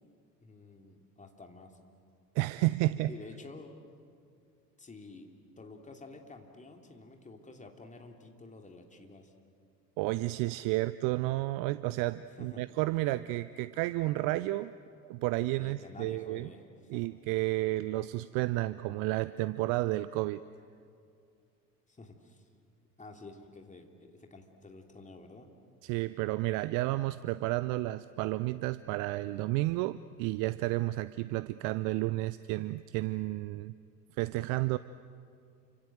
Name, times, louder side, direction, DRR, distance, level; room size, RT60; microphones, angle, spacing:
voice 1, 0.4-1.8 3.1-3.7 4.8-5.3 5.6-9.3 12.3-12.6 15.6-17.0 21.9-22.5 23.0-25.5 25.9-26.0, left 3 dB, 15° left, 3 dB, 3.0 m, -50 dB
voice 2, 2.4-3.1 10.0-14.7 15.1-16.5 16.9-20.4 25.8-33.7 34.2-34.8, right 18 dB, 40° right, 16 dB, 0.6 m, -31 dB
29.0 x 25.5 x 7.9 m, 2.4 s
figure-of-eight pair, 70°, 48 cm